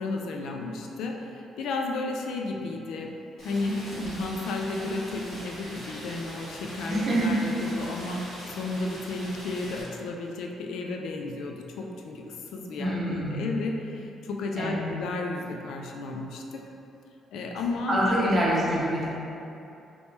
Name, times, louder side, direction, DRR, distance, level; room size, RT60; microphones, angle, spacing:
voice 1, 0.0-3.1 3.4-8.2 8.5-12.2 12.5-16.6 17.3-18.4, left 3 dB, 80° left, 1 dB, 0.3 m, -33 dB
Rain, 3.4-9.8, equal, 60° left, 1.3 m, -42 dB
voice 2, 6.8-7.4 12.8-13.5 14.6-14.9 17.9-19.1, right 1 dB, 25° right, -7 dB, 0.8 m, -26 dB
3.5 x 2.9 x 2.7 m, 2.8 s
cardioid pair, 150°, 0 cm